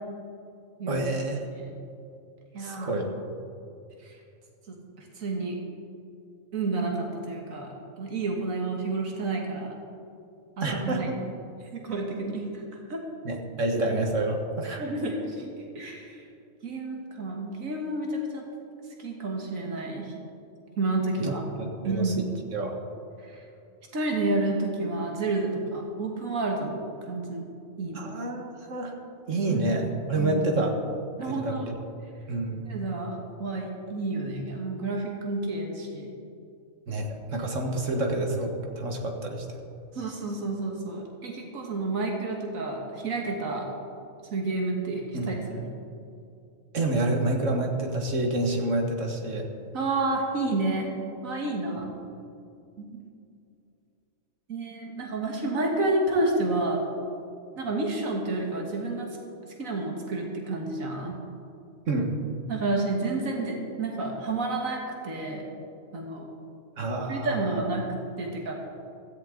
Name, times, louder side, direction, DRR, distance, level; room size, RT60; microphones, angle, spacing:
voice 1, 0.9-1.5 2.6-3.1 10.6-11.1 13.2-14.9 21.2-22.8 27.9-29.0 29.3-30.8 31.3-31.7 32.3-32.7 36.9-39.6 45.1-45.3 46.7-49.5 61.9-62.1 66.8-67.4, right 2 dB, 65° right, 2 dB, 1.9 m, -28 dB
voice 2, 2.5-3.0 4.0-4.2 4.7-5.6 6.5-9.8 10.6-11.3 11.7-13.0 14.8-15.4 15.8-16.3 16.6-18.4 19.0-20.1 20.8-21.4 21.8-22.2 23.2-23.4 23.9-27.5 27.8-28.1 29.5-29.6 30.2-30.5 31.2-31.7 32.7-36.1 39.9-43.7 44.3-45.8 49.7-50.9 51.2-51.9 52.8-53.0 54.5-56.8 57.6-59.1 59.6-61.2 62.5-65.5 65.9-66.3 67.1-67.8 68.2-68.5, right 2 dB, 90° right, 0 dB, 2.0 m, -30 dB
16.0 x 14.5 x 3.8 m, 2.6 s
omnidirectional pair, 1.4 m